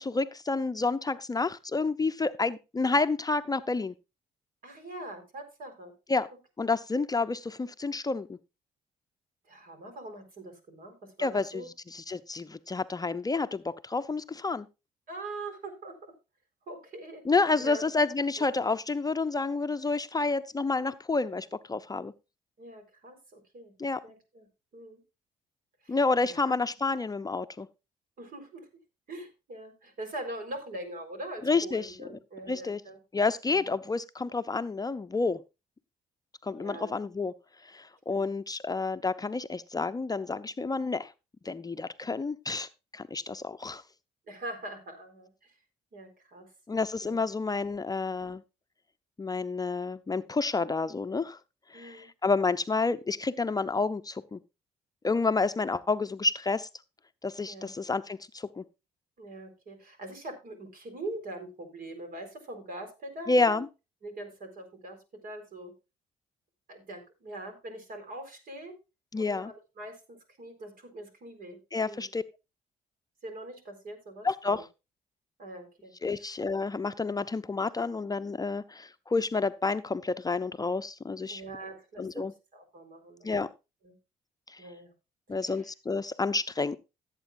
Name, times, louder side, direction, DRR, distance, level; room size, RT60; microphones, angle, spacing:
voice 1, 0.0-3.9 6.1-6.3 6.6-8.4 11.2-14.7 17.3-22.1 23.8-24.0 25.9-27.7 31.4-31.9 32.5-32.8 33.1-35.4 36.4-37.3 37.6-41.1 41.4-42.7 42.9-43.8 46.7-48.4 49.2-51.4 51.7-54.4 55.0-56.7 57.2-58.6 63.3-63.7 69.1-69.5 71.7-72.2 74.2-74.6 76.0-81.4 82.0-82.3 83.2-83.5 84.5-84.6 85.3-86.8, left 3 dB, 25° left, 0.6 m, -29 dB
voice 2, 4.6-5.9 6.6-6.7 9.5-11.7 15.1-16.0 16.7-17.2 17.6-17.9 18.4-18.5 22.6-23.7 24.0-24.5 24.7-25.0 25.8-26.0 26.2-26.6 28.2-28.7 29.1-33.0 33.4-33.7 36.5-36.9 38.1-38.3 44.3-45.5 45.9-46.5 47.0-47.2 51.7-52.1 57.5-57.7 59.2-63.6 64.0-65.0 65.2-65.7 66.7-68.7 69.2-71.6 71.8-72.1 73.2-74.6 75.4-75.9 76.2-76.3 81.3-82.3 82.5-83.3 83.8-84.0 84.6-84.9 85.3-85.7, right 1 dB, 60° right, 4.2 m, -43 dB
16.0 x 8.2 x 2.6 m
supercardioid pair, 60°, 16 cm